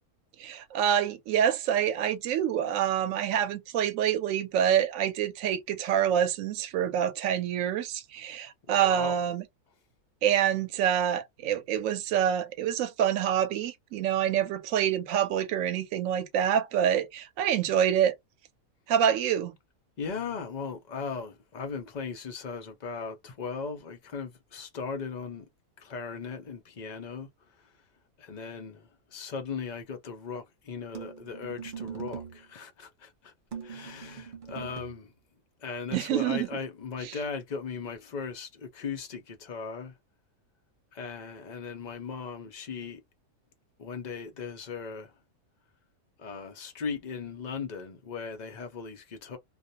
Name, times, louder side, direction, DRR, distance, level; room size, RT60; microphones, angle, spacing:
voice 1, 0.4-9.4 10.2-18.1 18.9-19.5 35.9-36.5 37.0-37.2, right 9 dB, 70° right, 1.0 m, -26 dB
voice 2, 8.7-9.1 20.0-25.4 25.8-27.3 28.2-33.3 33.6-35.1 35.6-39.9 40.9-43.0 43.8-45.1 46.2-49.4, left 5 dB, 65° left, 0.4 m, -38 dB
sound 1, 30.9-32.5 33.5-35.0, right 7 dB, 45° right, 0.7 m, -41 dB
2.5 x 2.0 x 2.7 m
omnidirectional pair, 1.6 m